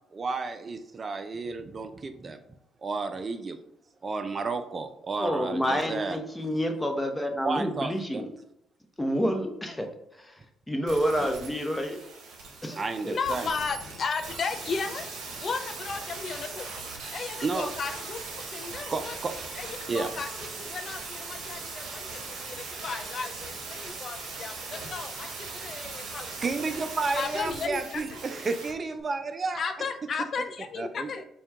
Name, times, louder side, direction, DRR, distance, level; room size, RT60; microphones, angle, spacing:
voice 1, 0.1-2.4 2.8-3.6 4.0-6.2 7.4-8.2 11.2-11.3 12.8-13.5 17.4-17.7 18.9-19.3 19.9-20.1 26.4-29.6 30.8-31.1, right 4 dB, 40° right, 8 dB, 0.4 m, -32 dB
voice 2, 5.2-8.3 9.0-9.9 10.1-10.4 10.7-12.0 12.6-13.2, equal, 10° left, 4 dB, 0.8 m, -29 dB
sound 1, 10.9-28.7 29.0-29.1, right 4 dB, 65° right, 0.9 m, -39 dB
voice 3, 13.1-16.7 17.1-19.1 19.6-26.3 26.6-26.7 27.1-28.2 29.5-31.2, left 5 dB, 50° left, 7 dB, 0.4 m, -35 dB
4.4 x 2.3 x 3.4 m, 0.81 s
hypercardioid pair, 50°, 0 cm